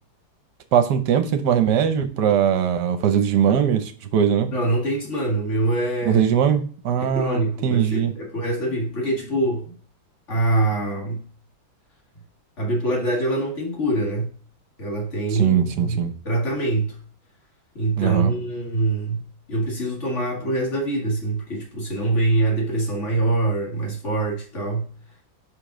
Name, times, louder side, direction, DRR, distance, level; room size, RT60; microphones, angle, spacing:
voice 1, 0.7-4.5 6.1-8.1 15.3-16.1 18.0-18.3, right 8 dB, 70° right, 1.3 m, -20 dB
voice 2, 4.5-6.3 7.0-9.7 10.3-11.2 12.6-14.3 14.8-16.9 17.8-19.2 19.5-24.9, right 2 dB, 40° left, 1.9 m, -24 dB
5.8 x 5.1 x 3.7 m
omnidirectional pair, 2.1 m